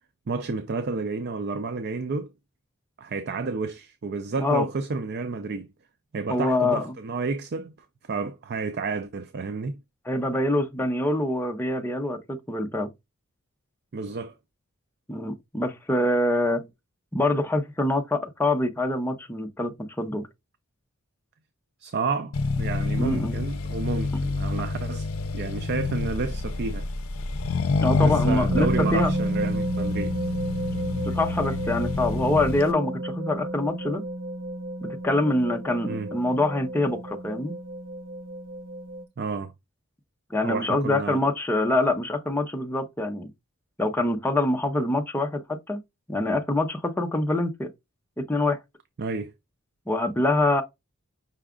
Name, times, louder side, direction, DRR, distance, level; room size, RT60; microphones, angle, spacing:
voice 1, 0.3-2.3 3.0-5.7 6.1-7.7 8.1-9.8 13.9-14.4 21.8-25.1 25.3-26.9 28.0-30.2 35.8-36.1 39.2-39.5 40.4-41.2 49.0-49.3, right 4 dB, 50° right, 0.4 m, -30 dB
voice 2, 6.3-6.9 10.1-12.9 15.1-16.6 17.1-20.3 23.0-23.3 27.8-29.1 31.0-34.0 34.8-37.5 40.3-43.3 43.8-45.8 46.1-47.7 48.2-48.6 49.9-50.6, left 2 dB, 10° left, 0.6 m, -25 dB
Accelerating revving vroom, 22.3-32.7, left 3 dB, 70° left, 0.5 m, -28 dB
sound 1, 28.5-39.0, right 1 dB, 85° right, 1.2 m, -31 dB
5.7 x 2.4 x 3.6 m
head